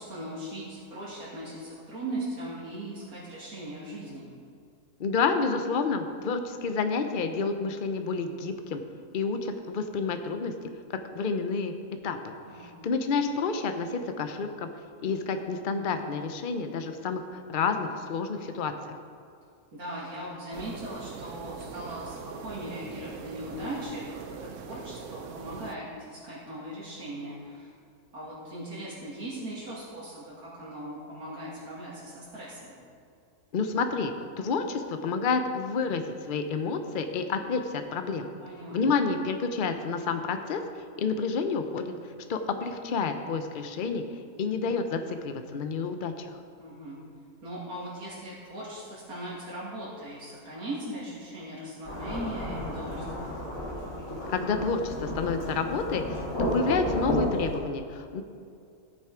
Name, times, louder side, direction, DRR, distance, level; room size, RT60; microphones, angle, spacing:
voice 1, 0.0-4.3 12.5-12.7 19.7-27.7 28.1-32.7 38.4-39.1 46.6-47.0 47.4-53.4, right 1 dB, 80° right, -8 dB, 2.9 m, -39 dB
voice 2, 5.0-8.8 9.1-10.5 10.9-11.7 12.0-12.3 12.6-14.7 15.0-17.2 17.5-18.7 33.5-38.3 38.7-40.6 41.0-41.9 42.3-44.0 44.4-46.3 54.3-56.3 56.5-58.2, left 4 dB, 45° left, 7 dB, 0.7 m, -29 dB
sound 1, 20.5-25.8, right 6 dB, 65° right, 0.9 m, -42 dB
Thunderstorm / Rain, 51.8-57.6, left 1 dB, 65° left, 2.9 m, -32 dB
14.5 x 7.1 x 4.9 m, 2.4 s
omnidirectional pair, 1.6 m